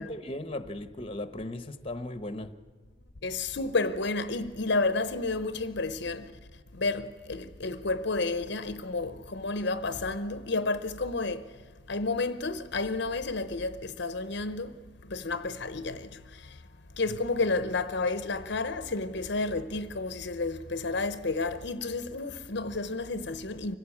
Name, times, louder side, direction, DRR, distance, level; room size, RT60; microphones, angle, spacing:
voice 1, 0.0-2.5 17.1-17.2, left 1 dB, 25° left, 1.0 m, -37 dB
voice 2, 3.2-6.3 6.7-11.4 11.9-14.7 15.1-16.1 17.0-23.8, left 3 dB, 55° left, 0.8 m, -31 dB
25.0 x 16.5 x 8.6 m
head